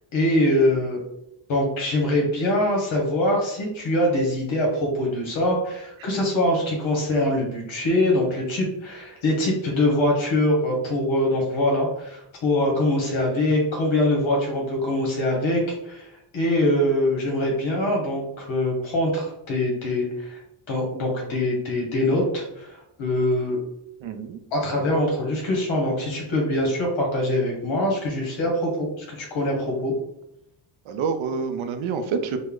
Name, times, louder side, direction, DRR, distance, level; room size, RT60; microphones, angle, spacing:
voice 1, 0.1-1.0 1.5-16.1 16.3-20.4 20.7-23.6 24.5-29.9, left 1 dB, 70° left, -1 dB, 1.0 m, -23 dB
voice 2, 24.0-24.4 30.9-32.4, right 5 dB, 75° right, 8 dB, 0.6 m, -27 dB
3.1 x 2.1 x 3.6 m, 0.81 s
wide cardioid pair, 120°, 48 cm